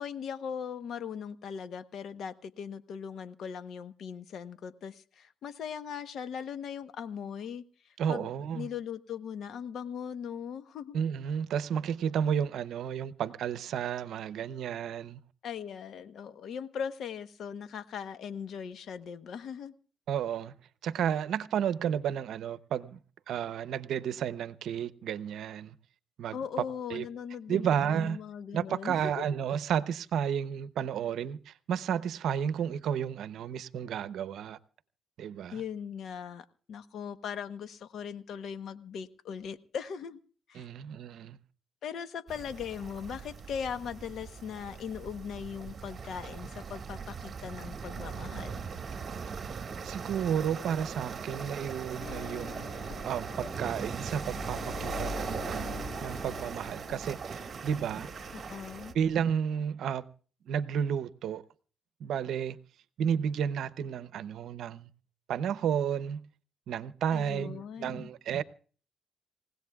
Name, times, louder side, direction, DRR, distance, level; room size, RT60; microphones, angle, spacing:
voice 1, 0.0-7.6 8.1-11.0 15.4-19.7 26.3-29.2 35.5-40.2 40.5-40.7 41.8-48.6 58.3-58.9 67.1-68.1, left 7 dB, 70° left, 1.0 m, -39 dB
voice 2, 8.0-8.7 10.9-15.2 20.1-20.5 20.8-23.0 23.3-25.7 26.2-26.4 26.9-27.0 27.5-28.2 28.5-34.6 35.2-35.6 40.6-41.4 49.8-52.6 53.0-58.1 58.9-60.0 60.5-61.4 62.0-62.6 63.0-64.9 65.3-66.2 66.7-68.4, right 8 dB, 75° right, 0.7 m, -32 dB
sound 1, 42.3-58.9, right 5 dB, 40° right, 1.7 m, -40 dB
sound 2, 52.0-57.7 58.0-59.1, left 5 dB, 50° left, 3.0 m, -45 dB
28.0 x 16.5 x 2.4 m
cardioid pair, 90°, 0 cm